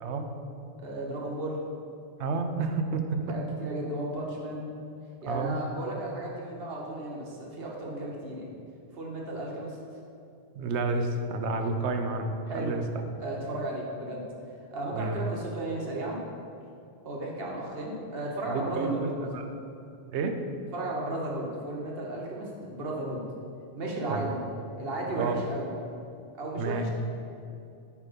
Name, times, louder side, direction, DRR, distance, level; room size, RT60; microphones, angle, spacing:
voice 1, 0.8-1.6 3.3-4.7 5.2-8.5 8.9-9.8 12.5-12.8 13.2-14.2 14.7-16.2 17.0-19.5 20.7-23.2 23.8-24.4 24.8-25.7 26.3-26.9, right 1 dB, 65° right, -2 dB, 1.3 m, -34 dB
voice 2, 2.2-3.2 5.3-5.6 10.6-12.8 14.9-15.2 18.5-19.4 20.1-20.4 24.1-24.3 25.1-25.4 26.6-26.9, right 3 dB, 90° right, 5 dB, 0.9 m, -30 dB
8.3 x 2.9 x 5.0 m, 2.6 s
omnidirectional pair, 1.1 m